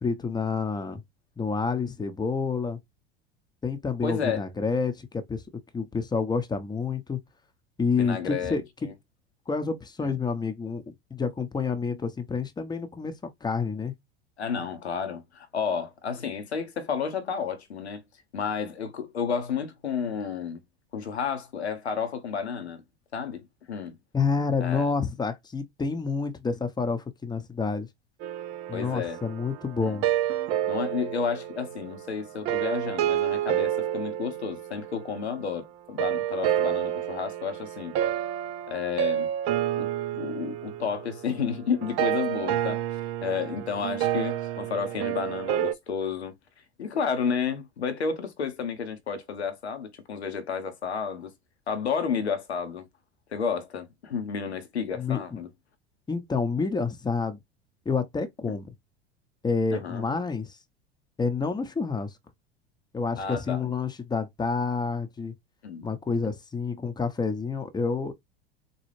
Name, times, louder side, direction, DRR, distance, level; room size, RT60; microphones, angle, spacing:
voice 1, 0.0-1.0 1.4-2.8 3.6-5.4 5.7-7.2 7.8-8.6 9.5-10.8 11.1-13.9 24.1-27.9 28.7-30.0 54.9-55.4 56.1-57.4 57.8-58.7 59.4-60.6 61.2-62.1 62.9-65.3 65.8-68.1, left 5 dB, 15° left, 0.7 m, -28 dB
voice 2, 4.0-4.5 7.9-8.9 10.0-10.1 14.4-18.0 18.3-20.6 20.9-22.8 23.1-24.0 24.6-24.9 28.7-29.2 29.8-30.0 30.7-37.9 38.7-39.3 39.7-46.3 46.8-51.3 51.7-52.9 53.3-55.5 59.7-60.0 63.2-63.7 65.6-65.9, left 6 dB, 85° left, 0.8 m, -31 dB
sound 1, 28.2-35.4 36.0-45.7, right 11 dB, 45° right, 0.5 m, -29 dB
4.1 x 2.3 x 3.1 m
figure-of-eight pair, 80°, 32 cm